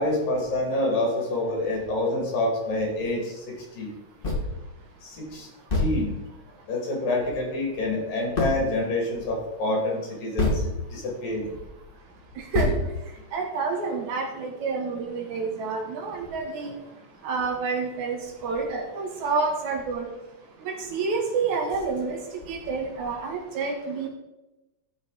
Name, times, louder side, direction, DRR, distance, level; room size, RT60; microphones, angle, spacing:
voice 1, 0.0-3.9 5.0-5.5 5.8-6.1 6.7-10.6 10.9-11.5, left 1 dB, 75° left, -1 dB, 4.2 m, -27 dB
sound 1, 4.2-4.6 5.1-5.2 5.7-6.4 8.4-8.8 10.4-11.0 11.5-11.6 12.5-13.4, left 2 dB, 25° left, 1.2 m, -26 dB
voice 2, 13.3-16.7 17.2-20.1 20.7-22.2 22.5-24.1, right 4 dB, 70° right, 3 dB, 2.3 m, -28 dB
14.0 x 5.2 x 4.0 m, 0.99 s
omnidirectional pair, 3.9 m